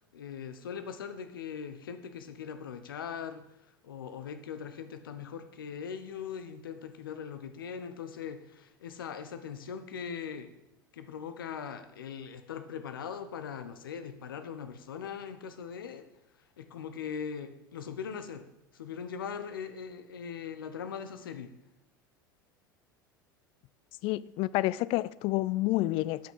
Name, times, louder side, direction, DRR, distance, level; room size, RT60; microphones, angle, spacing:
voice 1, 0.1-3.4 3.8-10.5 10.9-16.1 16.6-18.5 18.7-21.5, left 7 dB, 80° left, 0.9 m, -40 dB
voice 2, 24.0-26.2, left 17 dB, 50° left, 0.4 m, -29 dB
8.5 x 5.9 x 6.2 m
hypercardioid pair, 75°, 11 cm